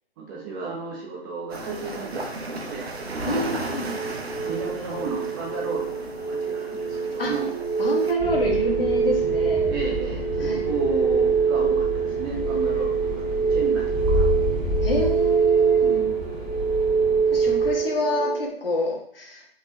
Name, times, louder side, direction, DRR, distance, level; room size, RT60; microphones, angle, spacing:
voice 1, 0.2-4.1 4.4-7.5 9.7-13.2 13.5-14.3 15.8-16.2, right 5 dB, 20° right, -2 dB, 0.7 m, -33 dB
sound 1, 1.5-8.1, right 2 dB, 80° right, 0.9 m, -35 dB
voice 2, 3.2-3.9 7.2-7.3 7.8-9.6 10.4-10.6 14.8-16.0 17.3-19.5, left 1 dB, 65° left, -1 dB, 1.6 m, -27 dB
sound 2, 3.3-18.5, right 5 dB, 20° left, 1.2 m, -24 dB
sound 3, 8.2-17.7, left 1 dB, ahead, 1.1 m, -31 dB
4.3 x 3.5 x 2.3 m, 0.65 s
figure-of-eight pair, 130°, 31 cm